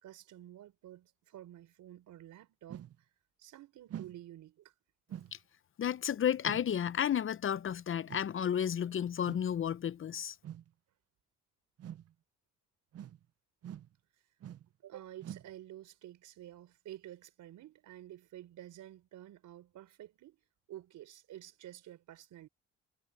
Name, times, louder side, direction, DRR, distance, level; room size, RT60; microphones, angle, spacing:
voice 1, 0.0-3.1 3.4-4.7 14.8-20.4 20.7-22.5, right 13 dB, 80° right, 4.6 m, -51 dB
sound 1, 2.7-3.0 3.9-4.2 5.1-5.4 6.4-6.7 8.1-8.3 9.3-9.5 10.4-10.7 11.8-12.1 12.9-13.2 13.6-13.9 14.4-14.7 15.2-15.5, right 10 dB, 55° right, 0.7 m, -45 dB
voice 2, 5.8-10.4, left 9 dB, 45° left, 0.6 m, -32 dB
cardioid pair, 90°, 30 cm